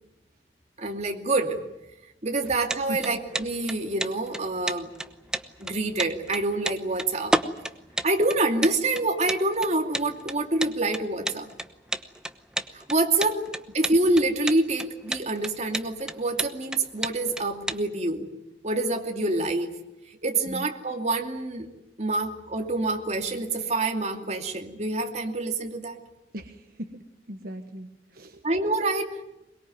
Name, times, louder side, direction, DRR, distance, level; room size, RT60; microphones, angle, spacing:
voice 1, 0.8-1.6 2.2-4.9 5.6-7.4 8.0-11.5 12.7-13.4 13.7-18.3 18.6-19.7 20.1-21.7 22.0-26.0 28.4-29.2, right 2 dB, 40° right, 4 dB, 2.5 m, -26 dB
sound 1, 2.4-17.8, right 1 dB, 5° right, 0.9 m, -31 dB
voice 2, 2.9-3.2 20.5-20.7 26.3-27.0 27.3-28.4, right 1 dB, 55° right, 6 dB, 1.3 m, -38 dB
22.5 x 22.0 x 9.3 m, 0.93 s
head